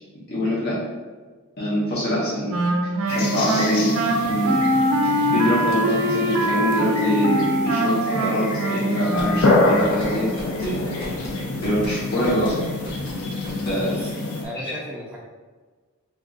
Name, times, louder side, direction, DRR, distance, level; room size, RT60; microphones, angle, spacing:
voice 1, 0.3-0.7 1.6-2.6 3.1-4.6 5.0-10.3 10.6-10.8 11.6-12.6 13.5-14.0 14.5-14.7, equal, 45° left, -8 dB, 1.1 m, -24 dB
Wind instrument woodwind instrument, 2.5-9.9, right 1 dB, 70° right, 0.4 m, -23 dB
sound 1, 3.1-14.4, left 2 dB, 80° left, 0.7 m, -27 dB
sound 2, 9.2-14.1, equal, 60° left, 1.4 m, -39 dB
voice 2, 13.7-14.1 14.4-15.2, equal, 5° right, -5 dB, 0.4 m, -35 dB
3.5 x 2.5 x 3.8 m, 1.4 s
head